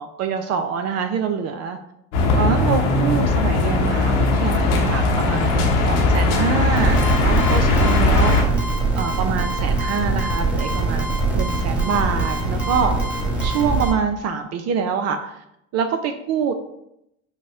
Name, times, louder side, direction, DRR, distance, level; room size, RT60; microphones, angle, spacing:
voice 1, 0.0-1.8 2.3-8.4 9.0-13.0 13.4-15.4 15.7-16.5, right 6 dB, 45° right, 7 dB, 0.5 m, -25 dB
sound 1, 2.1-8.4, left 2 dB, 75° left, 1.0 m, -19 dB
sound 2, 6.8-13.9, right 3 dB, 5° right, 1.5 m, -23 dB
5.2 x 2.1 x 4.6 m, 0.80 s
hypercardioid pair, 75°, 36 cm